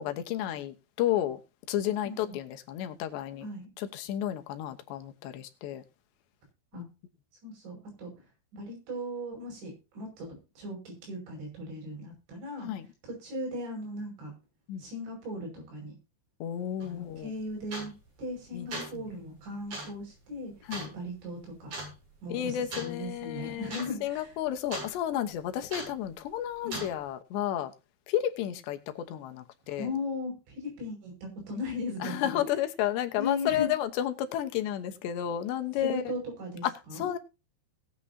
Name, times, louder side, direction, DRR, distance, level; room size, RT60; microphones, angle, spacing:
voice 1, 0.0-1.4 1.7-3.5 3.8-5.8 6.7-6.9 12.6-12.8 14.7-14.8 16.4-17.3 18.5-18.7 20.7-20.9 22.3-23.7 24.0-27.7 28.1-29.9 32.0-36.0 37.0-37.2, left 11 dB, 80° left, 3.2 m, -32 dB
voice 2, 2.0-2.4 3.4-3.7 6.7-6.9 7.4-8.1 8.5-12.7 13.0-14.3 14.8-15.9 16.9-17.9 18.2-20.5 20.9-21.7 22.2-24.4 26.6-26.9 29.8-32.4 33.2-33.7 35.8-37.1, left 2 dB, 90° right, 8.1 m, -38 dB
sound 1, 16.8-16.9 17.7-18.1 18.5-19.0 19.7-20.0 20.7-20.9 21.7-21.9 22.7-22.9 23.2-23.3 23.6-23.9 24.2-24.9 25.7-26.0 26.7-26.9, right 2 dB, 50° right, 9.0 m, -38 dB
19.5 x 8.3 x 2.8 m
omnidirectional pair, 5.1 m